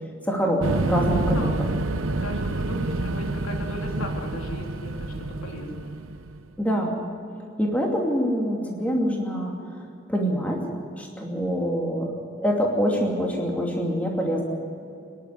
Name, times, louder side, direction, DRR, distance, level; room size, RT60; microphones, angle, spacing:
voice 1, 0.3-1.5 6.6-7.0 7.6-9.6 10.1-10.7 11.0-12.1 12.4-14.4, equal, 5° left, -1 dB, 2.6 m, -25 dB
sound 1, 0.6-6.4, right 2 dB, 80° right, 1.0 m, -28 dB
voice 2, 1.2-1.6 2.2-5.9, left 1 dB, 85° left, 1 dB, 3.4 m, -37 dB
24.5 x 11.0 x 9.7 m, 2.6 s
head